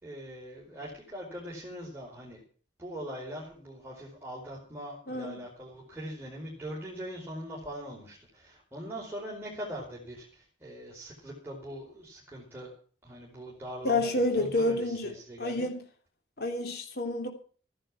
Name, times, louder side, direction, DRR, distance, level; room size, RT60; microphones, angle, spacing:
voice 1, 0.0-2.4 2.8-12.7 13.0-15.7, equal, 10° right, -6 dB, 4.9 m, -42 dB
voice 2, 5.1-5.4 13.8-15.1 15.4-15.8 16.4-17.3, left 2 dB, 55° left, 4 dB, 3.4 m, -29 dB
15.0 x 11.0 x 6.0 m, 0.43 s
head